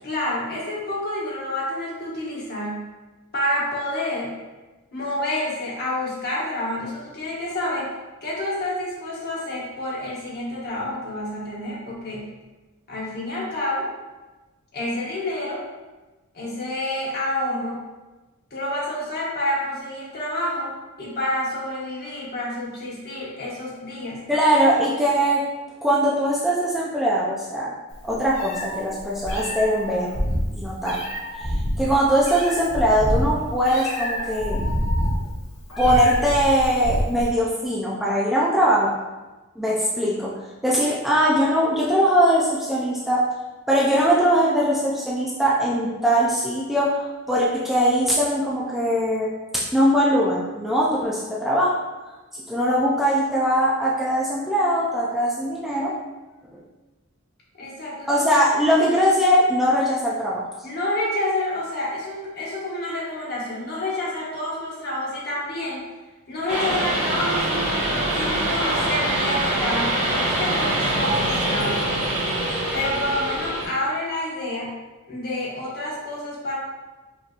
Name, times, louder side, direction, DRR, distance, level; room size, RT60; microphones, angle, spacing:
voice 1, 0.0-2.8 3.3-4.3 4.9-7.9 8.2-12.2 12.9-13.9 14.7-15.6 16.3-17.8 18.5-20.7 21.0-24.2 57.6-58.2 60.6-65.8 66.3-72.0 72.7-74.7 75.1-76.6, left 1 dB, 45° left, -5 dB, 1.2 m, -28 dB
voice 2, 24.3-25.4 25.8-27.7 28.0-30.1 30.5-31.0 31.3-34.6 35.8-38.9 39.6-40.3 40.6-43.3 43.7-51.8 52.3-55.9 56.5-56.6 58.1-60.4, equal, ahead, -6 dB, 0.4 m, -21 dB
Meow, 27.9-37.3, equal, 70° left, 1.1 m, -27 dB
sound 1, 66.5-73.7, right 1 dB, 85° right, 1.3 m, -24 dB
5.3 x 2.9 x 2.5 m, 1.2 s
head